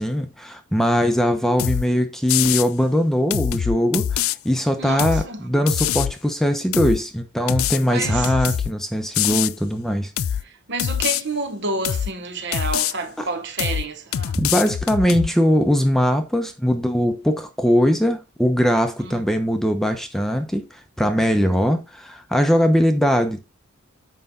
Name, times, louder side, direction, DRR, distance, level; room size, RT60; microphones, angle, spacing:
voice 1, 0.0-10.1 13.2-13.3 14.4-20.6 21.0-23.4, equal, ahead, 0.8 m, -20 dB
sound 1, 1.6-1.9 2.3-2.7 3.3-4.4 5.0-5.3 5.7-6.1 6.7-7.0 7.5-8.7 9.1-9.5 10.2-10.4 10.8-11.2 11.8-12.1 12.5-12.9 13.6-13.9 14.1-15.3, left 10 dB, 70° left, 0.3 m, -24 dB
voice 2, 4.8-5.5 7.9-8.3 10.4-14.4 19.0-19.2, right 3 dB, 55° right, 1.2 m, -29 dB
7.9 x 5.5 x 3.8 m
head